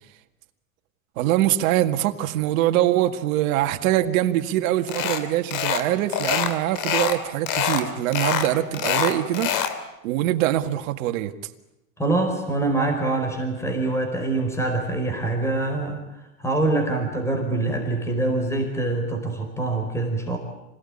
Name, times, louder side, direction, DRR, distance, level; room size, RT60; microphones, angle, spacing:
voice 1, 1.2-9.5 10.0-11.3, right 13 dB, 75° right, 1.9 m, -23 dB
sound 1, 4.9-5.2 5.5-5.8 6.1-7.2 7.5-7.8 8.1-9.8, left 9 dB, 55° left, 3.0 m, -25 dB
voice 2, 12.0-16.0 16.4-20.4, right 2 dB, 5° left, 4.7 m, -24 dB
26.5 x 18.0 x 10.0 m
supercardioid pair, 125°, 41 cm